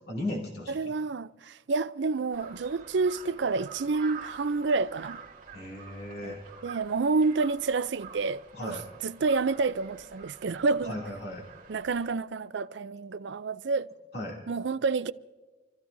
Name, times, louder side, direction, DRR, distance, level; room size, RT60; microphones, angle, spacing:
voice 1, 0.0-0.9 5.5-6.4 8.6-8.8 10.8-11.5 14.1-14.4, left 1 dB, 55° left, 2.8 m, -36 dB
voice 2, 0.7-5.2 6.2-6.4 6.6-11.0 11.7-13.9 14.5-15.1, right 4 dB, 70° right, 0.5 m, -29 dB
Crow, 2.3-12.1, right 6 dB, 40° right, 2.0 m, -47 dB
28.5 x 14.5 x 2.7 m
head